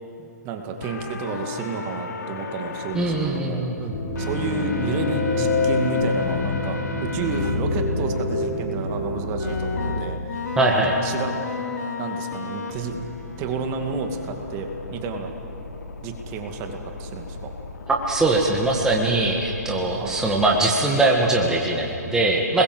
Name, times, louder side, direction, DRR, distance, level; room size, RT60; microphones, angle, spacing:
voice 1, 0.2-3.7 4.2-11.5 12.0-13.0 13.4-15.3 16.0-17.5 20.0-20.2, right 4 dB, 25° right, 4 dB, 2.3 m, -30 dB
sound 1, 0.8-3.4 4.1-7.6 8.1-8.2 9.4-20.6, left 4 dB, 75° left, 3.3 m, -35 dB
voice 2, 2.9-3.9 10.6-10.9 17.9-22.6, right 2 dB, 5° right, -2 dB, 1.9 m, -21 dB
sound 2, 3.9-10.0, left 3 dB, 50° left, 5.0 m, -26 dB
28.5 x 21.5 x 8.0 m, 3.0 s
hypercardioid pair, 150°, 9 cm